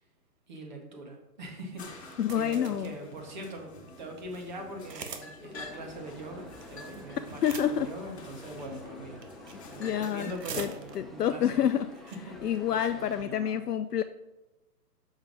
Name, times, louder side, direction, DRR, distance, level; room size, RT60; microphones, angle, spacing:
voice 1, 0.5-3.7 4.0-9.2 9.7-11.7 12.3-13.6, right 1 dB, 30° right, 1 dB, 1.6 m, -42 dB
sound 1, 1.8-10.3, left 3 dB, 40° left, 1.8 m, -48 dB
sound 2, 2.0-2.9 3.6-3.7 3.9-4.0 4.2-4.4 4.8-5.3 5.5-5.6 6.6-7.0 7.2-7.9 8.6-8.9 9.2-9.7 10.0-11.2 11.7-11.8 11.9-12.2 12.5-12.8, right 5 dB, 80° right, 1.4 m, -42 dB
voice 2, 2.2-2.9 7.2-7.9 9.8-10.3 10.6-11.9 12.4-14.0, left 9 dB, 70° left, 9 dB, 0.6 m, -28 dB
sound 3, 5.5-13.3, left 2 dB, ahead, 0.4 m, -50 dB
6.3 x 5.6 x 6.2 m, 0.98 s
hypercardioid pair, 170°, 49 cm